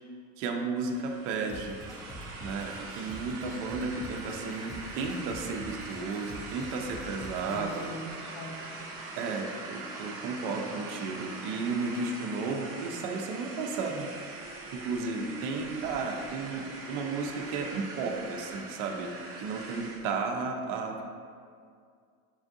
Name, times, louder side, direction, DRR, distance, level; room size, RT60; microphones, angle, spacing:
voice 1, 0.4-1.8 2.4-7.9 9.2-14.1 14.7-21.0, right 4 dB, 60° right, 3 dB, 0.7 m, -33 dB
sound 1, 0.8-20.1, right 3 dB, 30° right, 0.8 m, -42 dB
sound 2, 1.5-7.9, equal, 10° left, 0.5 m, -46 dB
voice 2, 7.5-8.8, left 1 dB, 40° left, -1 dB, 0.8 m, -41 dB
7.1 x 2.5 x 2.6 m, 2.2 s
supercardioid pair, 120°, 45 cm